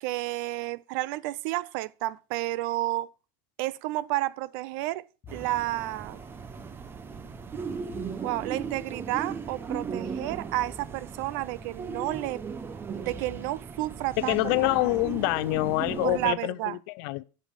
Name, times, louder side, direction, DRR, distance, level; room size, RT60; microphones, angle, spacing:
voice 1, 0.0-3.1 3.6-5.1 5.3-6.2 8.2-12.4 12.9-14.4 16.0-16.8, right 17 dB, 65° right, 0.5 m, -31 dB
sound 1, 5.2-6.8 7.0-8.6 8.9-9.1 9.7-10.9 11.1-11.2 12.4-14.5 15.1-15.9, left 6 dB, 30° left, 1.6 m, -52 dB
sound 2, 5.3-16.3, right 5 dB, 20° right, 0.7 m, -37 dB
voice 2, 14.2-17.2, left 20 dB, 65° left, 0.5 m, -26 dB
11.0 x 5.6 x 4.7 m
supercardioid pair, 145°, 12 cm